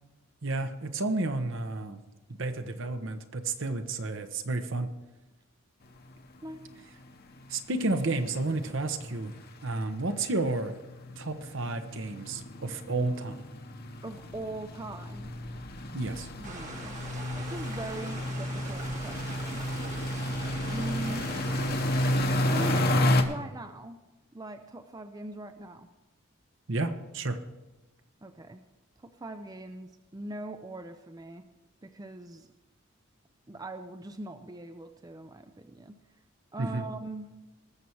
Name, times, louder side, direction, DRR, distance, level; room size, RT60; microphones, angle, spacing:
voice 1, 0.4-2.0 2.3-4.9 7.5-9.3 9.6-10.7 11.2-13.4 15.9-16.3 26.7-27.4 36.6-36.9, right 2 dB, 60° right, 8 dB, 1.0 m, -31 dB
sound 1, 6.1-6.2 6.5-6.7 7.0-7.1 7.4-23.2, left 1 dB, 45° left, 1.1 m, -31 dB
voice 2, 14.0-15.3 16.4-17.0 17.3-19.6 20.7-21.3 22.5-24.0 24.3-25.9 28.2-28.6 29.0-31.5 31.8-32.5 33.5-36.0 36.5-37.3, right 2 dB, 15° right, 8 dB, 0.5 m, -41 dB
sound 2, 16.4-22.8, right 3 dB, 35° right, 1.5 m, -42 dB
19.5 x 7.1 x 4.6 m, 1.1 s
head